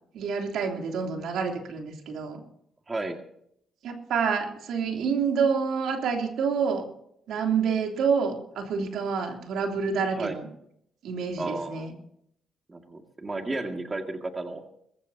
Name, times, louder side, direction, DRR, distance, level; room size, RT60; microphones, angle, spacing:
voice 1, 0.1-2.4 3.8-6.8 7.3-10.5 11.0-11.9, right 6 dB, 75° right, 3 dB, 3.2 m, -28 dB
voice 2, 2.9-3.2 10.2-10.4 11.4-11.9 12.7-14.6, right 2 dB, 25° right, 4 dB, 2.1 m, -33 dB
21.5 x 15.5 x 2.9 m, 0.70 s
cardioid pair, 90°, 0 cm